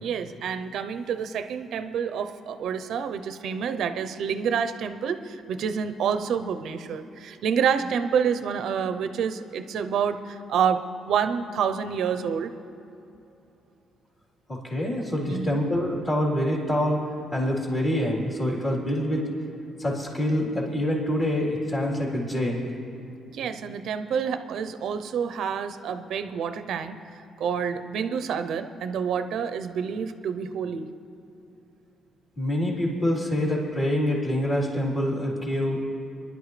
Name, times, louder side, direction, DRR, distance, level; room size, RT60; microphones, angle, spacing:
voice 1, 0.0-10.8 11.0-12.5 15.3-15.6 23.3-27.0 27.4-30.9, right 7 dB, 75° right, 10 dB, 0.6 m, -28 dB
voice 2, 14.5-17.0 17.3-19.3 19.8-22.6 32.4-35.8, left 1 dB, 35° left, -4 dB, 3.6 m, -26 dB
24.0 x 11.0 x 3.3 m, 2.9 s
cardioid pair, 90°, 0 cm